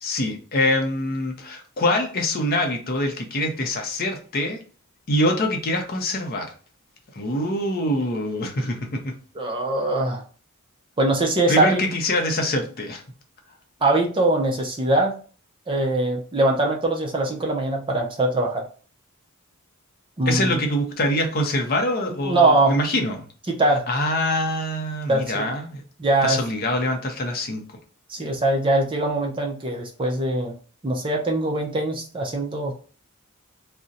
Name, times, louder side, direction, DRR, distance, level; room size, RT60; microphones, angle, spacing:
voice 1, 0.0-4.6 5.1-6.5 7.1-9.1 11.5-13.0 20.3-23.2 23.9-25.8 26.2-27.8, left 1 dB, 45° left, 3 dB, 0.6 m, -24 dB
voice 2, 9.4-10.2 11.0-11.8 13.8-15.1 15.7-18.6 20.2-20.5 22.2-22.8 23.5-23.9 25.1-25.5 26.0-26.4 28.1-30.5 30.8-32.7, right 2 dB, 25° right, 1 dB, 0.4 m, -22 dB
2.5 x 2.0 x 3.9 m, 0.40 s
head